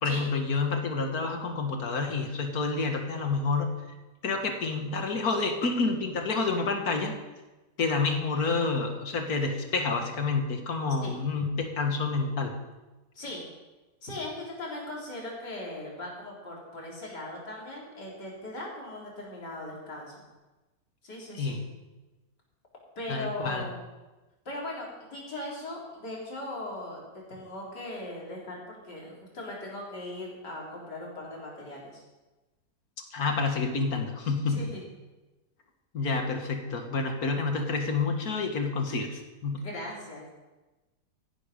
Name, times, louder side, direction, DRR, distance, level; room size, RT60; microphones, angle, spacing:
voice 1, 0.0-3.7 4.2-7.1 7.8-12.5 21.4-21.6 23.1-23.7 33.1-34.6 35.9-39.7, left 4 dB, 60° left, 4 dB, 2.1 m, -28 dB
voice 2, 14.0-20.3 21.0-21.6 23.0-23.8 24.5-27.0 27.3-32.0 34.5-34.8 39.6-40.4, left 1 dB, 80° left, -3 dB, 4.5 m, -39 dB
14.5 x 11.5 x 5.2 m, 1.1 s
omnidirectional pair, 1.8 m